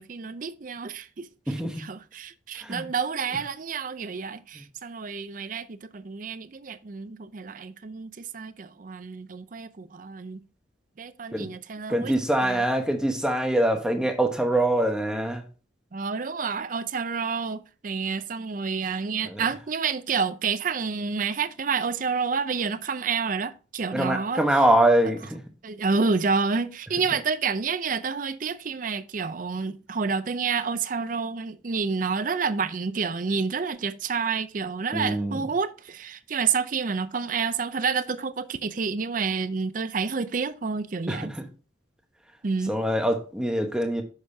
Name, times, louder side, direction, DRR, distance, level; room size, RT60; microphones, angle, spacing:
voice 1, 0.0-10.4 11.0-12.1 12.4-12.6 15.9-24.4 25.6-41.3 42.4-42.7, right 5 dB, 40° right, 0.5 m, -29 dB
voice 2, 1.5-1.8 2.6-2.9 4.5-4.6 11.3-11.5 11.9-15.4 19.3-19.4 23.9-25.4 34.9-35.4 41.1-41.5 42.7-44.0, right 1 dB, 5° right, 1.0 m, -24 dB
8.3 x 6.4 x 2.7 m
head